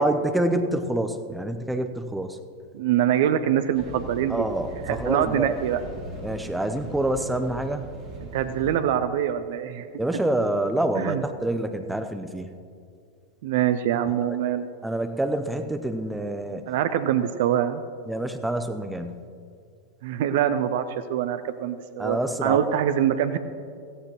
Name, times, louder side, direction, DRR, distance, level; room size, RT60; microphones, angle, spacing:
voice 1, 0.0-2.4 4.3-5.6 6.2-7.9 10.0-12.5 14.1-14.2 14.8-16.6 18.1-19.2 22.0-22.7, right 1 dB, 5° right, 7 dB, 0.9 m, -27 dB
voice 2, 2.7-4.5 4.9-5.8 8.2-9.9 11.0-11.2 13.4-14.7 16.7-17.8 20.0-23.4, right 10 dB, 55° right, 11 dB, 0.6 m, -24 dB
sound 1, 3.7-8.8, right 1 dB, 35° right, 2.7 m, -40 dB
16.5 x 14.5 x 3.1 m, 2.3 s
figure-of-eight pair, 90°, 0 cm